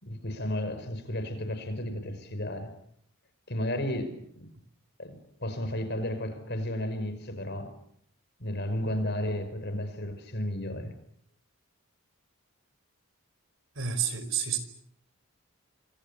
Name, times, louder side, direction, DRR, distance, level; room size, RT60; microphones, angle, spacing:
voice 1, 0.0-2.7 3.5-4.5 5.0-7.7 8.4-10.9, left 1 dB, 50° left, 9 dB, 5.5 m, -33 dB
voice 2, 13.8-14.6, right 8 dB, 60° right, 12 dB, 5.1 m, -29 dB
28.0 x 26.5 x 7.0 m, 0.68 s
head